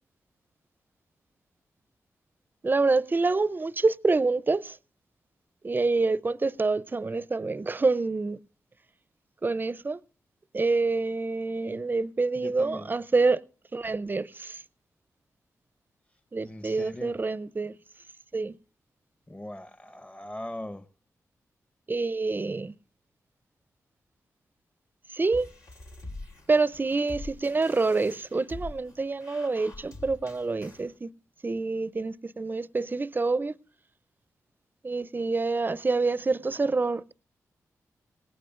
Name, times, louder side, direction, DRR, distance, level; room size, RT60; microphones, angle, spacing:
voice 1, 2.6-4.8 5.6-8.4 9.4-10.0 10.5-13.4 13.7-14.6 16.3-17.8 18.3-18.5 21.9-22.7 25.1-25.5 26.5-31.1 31.4-33.5 34.8-37.1, right 3 dB, 35° right, 0.5 m, -27 dB
voice 2, 12.3-13.0 16.4-17.2 19.3-20.9, left 1 dB, 20° left, 1.0 m, -40 dB
sound 1, 25.3-30.9, left 2 dB, 80° left, 2.8 m, -44 dB
19.0 x 17.0 x 2.5 m
cardioid pair, 50°, 6 cm